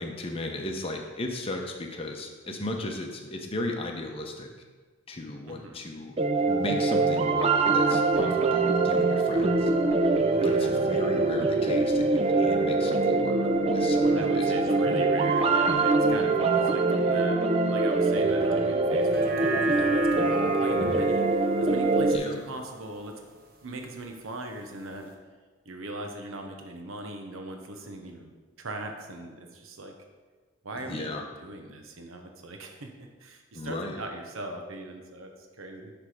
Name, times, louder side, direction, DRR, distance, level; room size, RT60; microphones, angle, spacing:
voice 1, 0.0-4.5 5.1-6.2 6.5-9.7 10.4-14.9 22.1-22.4 30.9-31.3 33.5-34.0, left 1 dB, 30° left, 2 dB, 0.7 m, -36 dB
voice 2, 5.5-5.8 10.4-10.8 14.1-17.4 17.7-23.2 23.6-25.1 25.6-29.9 30.6-35.9, right 2 dB, 90° right, 4 dB, 0.9 m, -40 dB
sound 1, 6.2-22.2, right 3 dB, 30° right, 0.4 m, -24 dB
sound 2, 9.6-21.1, left 4 dB, ahead, 1.9 m, -41 dB
sound 3, 19.0-23.6 24.0-24.1, right 3 dB, 45° right, 0.8 m, -36 dB
10.0 x 3.4 x 4.9 m, 1.4 s
head